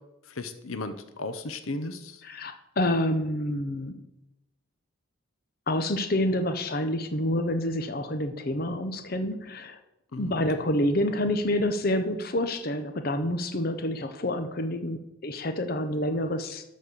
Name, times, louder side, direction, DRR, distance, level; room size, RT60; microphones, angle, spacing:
voice 1, 0.2-2.2 10.1-10.3, left 2 dB, 80° left, 10 dB, 0.8 m, -35 dB
voice 2, 2.2-4.0 5.7-9.8 10.2-16.6, left 1 dB, 45° left, 7 dB, 0.7 m, -28 dB
12.5 x 4.2 x 6.7 m, 0.92 s
head